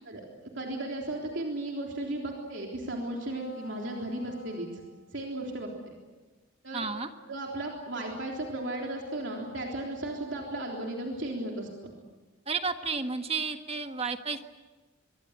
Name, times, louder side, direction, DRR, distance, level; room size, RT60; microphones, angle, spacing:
voice 1, 0.6-4.7 5.1-5.7 6.6-6.9 7.3-11.9, right 1 dB, 60° right, 0 dB, 3.6 m, -35 dB
sound 1, 3.1-5.3 8.6-11.8, left 3 dB, 75° left, 3.9 m, -49 dB
voice 2, 6.7-7.1 12.5-14.4, right 4 dB, 30° right, 7 dB, 1.5 m, -32 dB
25.5 x 23.0 x 8.1 m, 1.2 s
head